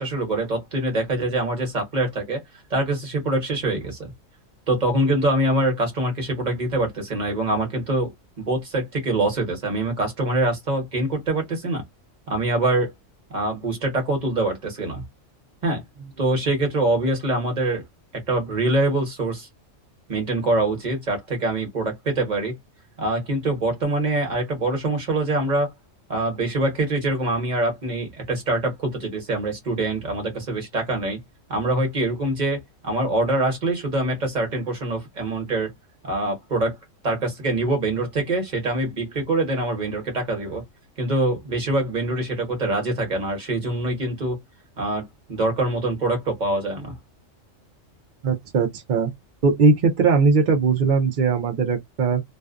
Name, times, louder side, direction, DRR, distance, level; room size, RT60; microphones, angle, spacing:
voice 1, 0.0-2.4 2.7-4.1 4.7-8.1 8.4-11.8 12.3-12.9 13.3-15.0 15.6-15.8 16.2-17.8 18.3-19.5 20.1-22.5 23.0-25.7 26.1-31.2 31.5-35.7 36.0-36.8 37.0-40.6 41.0-44.4 44.8-45.0 45.3-46.9, right 2 dB, 35° right, 1.1 m, -24 dB
voice 2, 48.2-49.1 49.4-52.2, right 4 dB, 60° right, 0.5 m, -19 dB
2.5 x 2.3 x 2.4 m
omnidirectional pair, 1.4 m